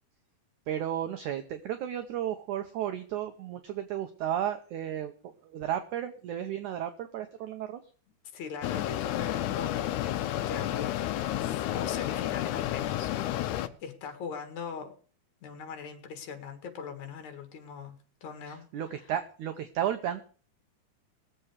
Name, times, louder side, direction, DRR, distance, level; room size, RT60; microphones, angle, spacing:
voice 1, 0.7-7.8 18.5-20.2, right 10 dB, 80° right, 8 dB, 1.8 m, -33 dB
voice 2, 8.3-14.9 15.4-18.0 18.2-18.7, left 6 dB, 55° left, 6 dB, 2.7 m, -41 dB
Mechanisms, 8.6-13.7, left 13 dB, 85° left, 1.7 m, -31 dB
20.0 x 7.7 x 4.9 m, 0.41 s
omnidirectional pair, 4.5 m